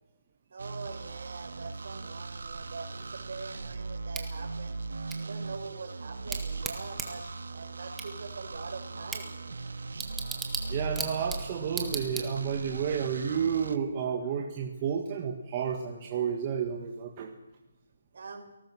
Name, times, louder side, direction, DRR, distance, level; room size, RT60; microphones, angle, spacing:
voice 1, 0.5-4.8 5.1-7.2 7.5-9.3 18.1-18.5, right 4 dB, 50° right, 7 dB, 4.7 m, -43 dB
sound 1, 0.6-13.8, right 3 dB, 75° right, 1.6 m, -39 dB
Bicycle / Tick, 4.1-12.7, right 5 dB, 5° right, 1.5 m, -40 dB
voice 2, 10.7-17.3, right 7 dB, 20° right, 1 dB, 1.7 m, -31 dB
29.0 x 19.0 x 6.2 m, 1.0 s
hypercardioid pair, 170°, 0 cm